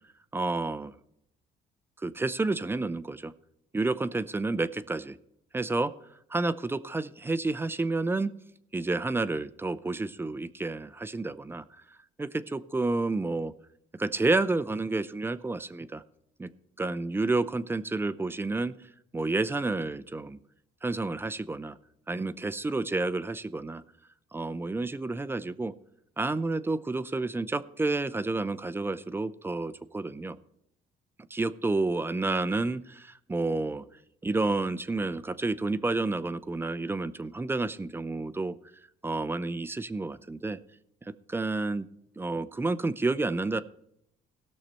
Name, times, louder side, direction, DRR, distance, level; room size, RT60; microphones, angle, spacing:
voice 1, 0.3-0.9 2.0-3.3 3.7-5.1 5.5-5.9 6.3-8.3 8.7-11.6 12.2-13.5 14.0-16.0 16.4-16.5 16.8-18.8 19.1-20.4 20.8-21.8 22.1-23.8 24.3-25.7 26.2-30.4 31.3-33.8 34.2-38.6 39.0-40.6 41.3-41.9 42.2-43.6, right 3 dB, 15° right, 14 dB, 0.5 m, -30 dB
17.5 x 6.5 x 4.3 m, 0.76 s
cardioid pair, 110°, 17 cm